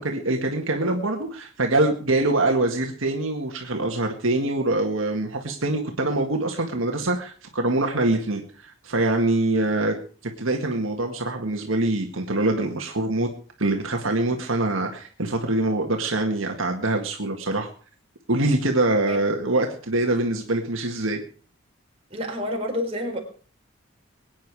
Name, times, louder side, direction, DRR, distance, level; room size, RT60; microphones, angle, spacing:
voice 1, 0.0-10.0 10.2-13.3 13.6-17.7 18.3-21.2, right 2 dB, 70° right, 3 dB, 1.9 m, -24 dB
voice 2, 22.1-23.2, left 1 dB, 30° right, 0 dB, 4.5 m, -28 dB
22.0 x 9.5 x 4.8 m, 0.41 s
head